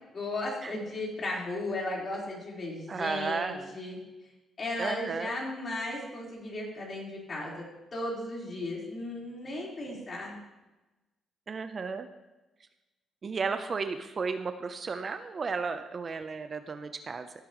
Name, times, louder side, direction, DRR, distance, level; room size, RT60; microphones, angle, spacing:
voice 1, 0.1-4.0 4.6-7.6 7.9-10.3, left 2 dB, 40° left, -3 dB, 4.3 m, -35 dB
voice 2, 2.9-3.8 4.8-5.3 11.5-12.1 13.2-17.3, right 4 dB, 40° right, 9 dB, 0.7 m, -34 dB
16.0 x 8.5 x 3.1 m, 1.1 s
cardioid pair, 90°, 0 cm